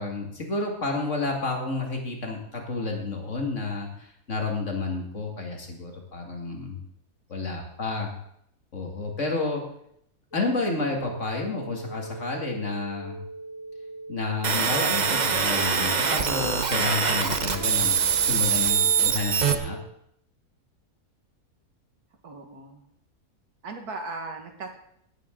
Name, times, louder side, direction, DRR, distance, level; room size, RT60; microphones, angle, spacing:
voice 1, 0.0-6.8 7.3-8.1 8.7-9.6 10.3-13.2 14.1-18.0 18.2-19.8, left 3 dB, 50° left, 1 dB, 2.5 m, -30 dB
sound 1, 10.3-19.8, right 2 dB, 25° left, 1.1 m, -40 dB
sound 2, 14.4-19.5, right 6 dB, 35° right, 0.8 m, -23 dB
voice 2, 22.2-22.8 23.6-24.8, right 3 dB, 80° right, 4 dB, 2.1 m, -37 dB
18.0 x 8.9 x 3.8 m, 0.72 s
omnidirectional pair, 1.6 m